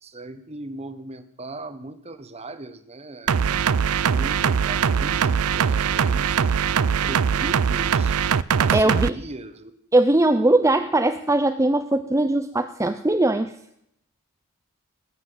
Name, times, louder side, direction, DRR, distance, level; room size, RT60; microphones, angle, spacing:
voice 1, 0.0-3.4 4.0-8.2 8.6-9.7, right 2 dB, 30° right, 10 dB, 1.3 m, -38 dB
sound 1, 3.3-9.1, right 7 dB, 75° right, 0.5 m, -21 dB
voice 2, 8.7-9.1 9.9-13.5, right 2 dB, 15° right, 8 dB, 0.6 m, -20 dB
21.0 x 7.4 x 7.8 m, 0.73 s
head